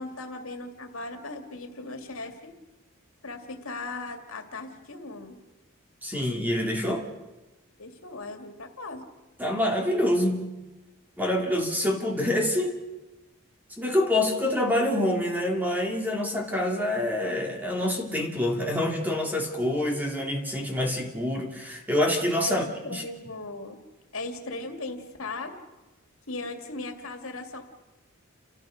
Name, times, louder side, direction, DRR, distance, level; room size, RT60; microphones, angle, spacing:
voice 1, 0.0-2.5 3.2-5.4 7.8-9.1 22.4-23.8 24.1-25.5 26.3-27.6, left 2 dB, 80° left, 5 dB, 2.4 m, -37 dB
voice 2, 6.0-7.0 9.4-10.5 11.2-12.8 13.8-22.6 22.9-23.0, left 1 dB, 10° right, 1 dB, 2.6 m, -26 dB
29.5 x 14.0 x 6.5 m, 1.1 s
head